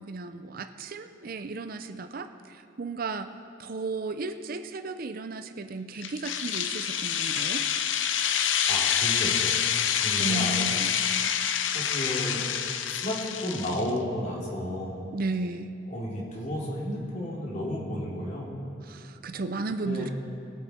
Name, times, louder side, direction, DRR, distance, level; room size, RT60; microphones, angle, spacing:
voice 1, 0.0-3.3 3.6-7.6 10.2-11.0 15.1-15.7 18.9-20.1, right 3 dB, 50° right, 9 dB, 0.5 m, -34 dB
sound 1, 6.0-13.9, left 8 dB, 80° left, 0.6 m, -27 dB
voice 2, 8.7-9.7 10.0-10.5 11.7-12.4 12.9-15.0 15.9-18.6 19.8-20.1, left 1 dB, 40° left, -4 dB, 2.8 m, -32 dB
22.0 x 8.1 x 4.3 m, 2.7 s
head